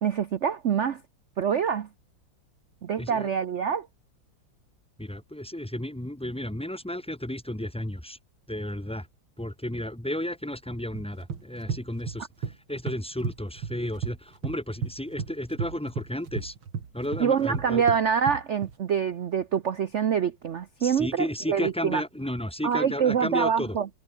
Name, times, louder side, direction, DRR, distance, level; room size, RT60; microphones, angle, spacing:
voice 1, 0.0-1.0 1.4-1.9 2.8-3.9 17.2-22.0 22.6-23.9, right 7 dB, 65° right, 0.7 m, -25 dB
voice 2, 3.0-3.3 5.0-8.2 8.5-9.1 9.4-16.5 16.9-17.8 20.8-23.8, left 1 dB, 5° left, 0.6 m, -33 dB
sound 1, 10.9-12.6 12.9-14.2 14.4-18.7, right 6 dB, 85° right, 3.3 m, -33 dB
omnidirectional pair, 2.2 m